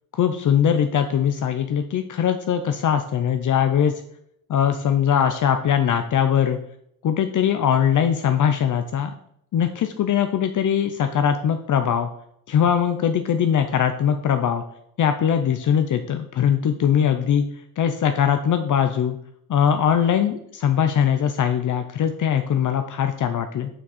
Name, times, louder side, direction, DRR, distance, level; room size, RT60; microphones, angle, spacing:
voice 1, 0.1-4.0 4.5-6.6 7.0-9.1 9.5-12.1 12.5-14.6 15.0-17.4 17.8-19.2 19.5-23.7, left 8 dB, 60° left, 8 dB, 0.6 m, -21 dB
7.1 x 6.1 x 4.1 m, 0.72 s
wide cardioid pair, 135°, 35 cm